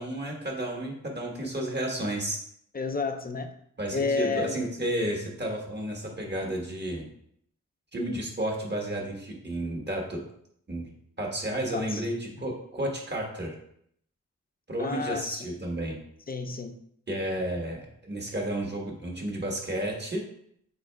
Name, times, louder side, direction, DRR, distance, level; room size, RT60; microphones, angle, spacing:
voice 1, 0.0-2.4 3.8-7.1 7.9-10.2 10.7-10.9 11.2-13.5 14.7-16.0 17.1-20.2, right 1 dB, 35° right, 0 dB, 1.3 m, -32 dB
voice 2, 2.7-3.5 3.9-4.6 11.7-12.0 12.4-12.5 14.8-15.5 16.3-16.7, left 4 dB, 30° left, 5 dB, 0.5 m, -30 dB
6.2 x 3.7 x 2.3 m, 0.69 s
cardioid pair, 70°, 32 cm